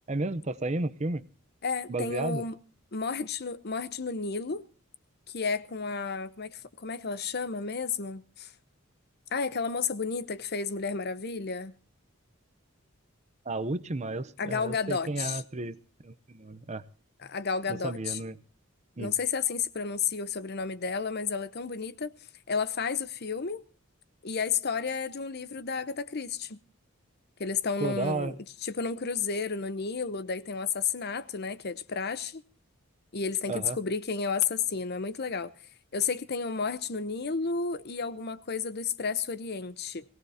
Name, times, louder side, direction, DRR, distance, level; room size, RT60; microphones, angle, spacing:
voice 1, 0.1-1.2 1.9-2.4 13.5-15.8 16.0-16.8 17.8-18.4 19.0-19.1 27.8-28.3 33.5-33.8, right 2 dB, 35° right, 0.7 m, -32 dB
voice 2, 1.6-2.6 2.9-4.6 5.3-8.5 9.3-11.7 14.4-15.4 17.2-18.2 19.0-22.1 22.5-23.6 24.2-26.6 27.4-28.4 28.6-32.4 33.1-35.5 35.9-40.0, left 5 dB, 50° left, 0.8 m, -32 dB
21.5 x 17.0 x 2.8 m
head